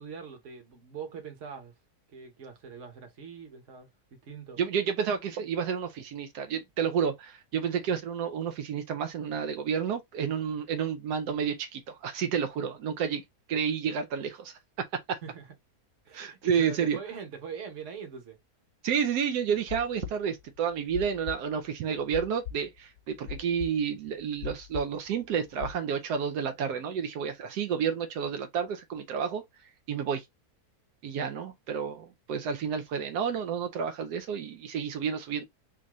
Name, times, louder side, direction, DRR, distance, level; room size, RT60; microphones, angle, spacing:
voice 1, 0.0-1.7 2.1-3.9 4.2-4.6 15.2-15.5 16.0-18.4, right 7 dB, 55° right, 1.3 m, -42 dB
voice 2, 4.6-13.2 13.5-15.2 16.1-17.0 18.8-29.4 29.9-30.2 31.0-35.4, right 7 dB, 85° right, 1.2 m, -30 dB
sound 1, 19.6-25.8, left 8 dB, 65° left, 0.8 m, -40 dB
3.7 x 2.6 x 3.0 m
omnidirectional pair, 1.6 m